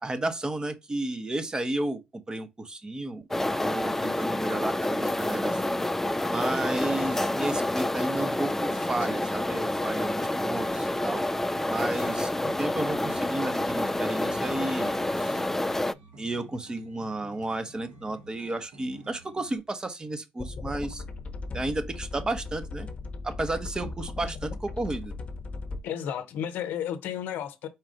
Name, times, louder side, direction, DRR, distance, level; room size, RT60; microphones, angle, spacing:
voice 1, 0.0-3.2 3.6-5.8 6.3-11.2 11.7-15.4 16.2-21.0 21.5-22.9 23.2-25.1, right 2 dB, 25° right, 0.8 m, -32 dB
sound 1, 3.3-15.9, left 1 dB, 10° left, 0.3 m, -28 dB
sound 2, 12.7-19.6, right 2 dB, 75° right, 1.3 m, -51 dB
sound 3, 20.4-25.8, left 3 dB, 40° left, 0.8 m, -37 dB
voice 2, 25.8-27.7, left 9 dB, 75° left, 0.6 m, -32 dB
4.4 x 2.4 x 4.8 m
supercardioid pair, 65°, 3 cm